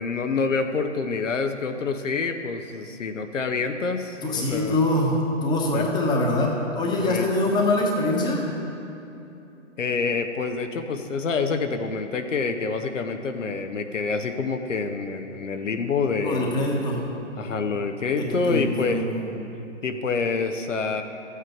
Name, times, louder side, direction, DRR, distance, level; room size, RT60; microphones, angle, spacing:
voice 1, 0.0-4.7 5.7-5.9 7.0-7.3 9.8-16.7 17.4-19.1 19.8-21.0, left 4 dB, 75° left, 6 dB, 0.9 m, -27 dB
voice 2, 4.2-8.4 16.2-17.1 18.2-19.2, left 2 dB, 10° left, -1 dB, 1.2 m, -24 dB
13.5 x 8.2 x 4.5 m, 2.9 s
figure-of-eight pair, 130°, 38 cm